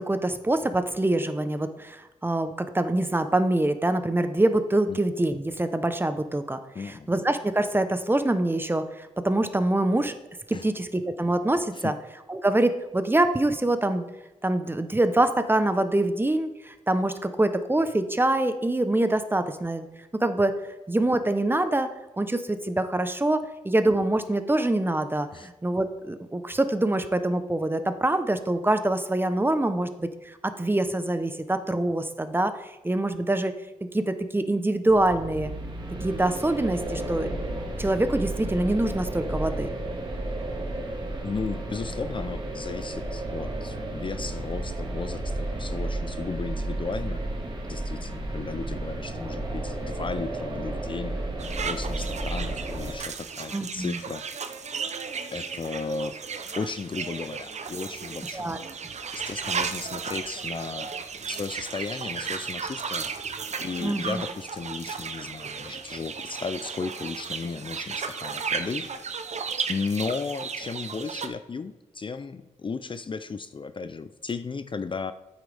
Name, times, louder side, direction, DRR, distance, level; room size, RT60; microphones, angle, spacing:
voice 1, 0.0-10.1 10.5-11.9 12.3-14.0 14.4-19.9 20.2-20.5 20.9-21.9 22.2-33.5 33.9-35.5 36.0-37.3 37.8-39.7 53.5-54.0 58.3-58.6 63.8-64.2, right 1 dB, 15° right, 9 dB, 0.8 m, -25 dB
voice 2, 6.7-7.1 10.5-10.7 11.7-11.9 25.3-25.5 41.2-47.2 47.7-51.2 51.5-54.3 55.3-56.1 56.5-58.6 59.1-60.9 61.3-63.1 63.6-68.9 69.7-75.1, left 4 dB, 40° left, 11 dB, 0.5 m, -35 dB
sound 1, 34.9-52.9, right 2 dB, 35° right, 1.8 m, -32 dB
sound 2, 51.4-71.3, right 5 dB, 55° right, 0.7 m, -34 dB
9.2 x 8.1 x 3.4 m, 1.0 s
cardioid pair, 75°, 14 cm